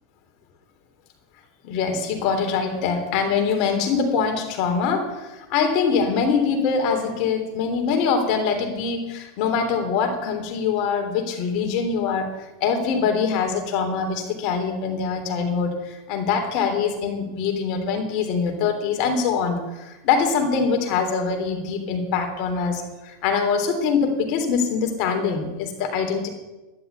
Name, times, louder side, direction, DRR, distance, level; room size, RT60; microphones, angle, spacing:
voice 1, 1.6-12.3 12.6-26.3, left 5 dB, 55° left, 5 dB, 3.4 m, -23 dB
12.0 x 11.0 x 8.2 m, 1.1 s
hypercardioid pair, 105°, 0 cm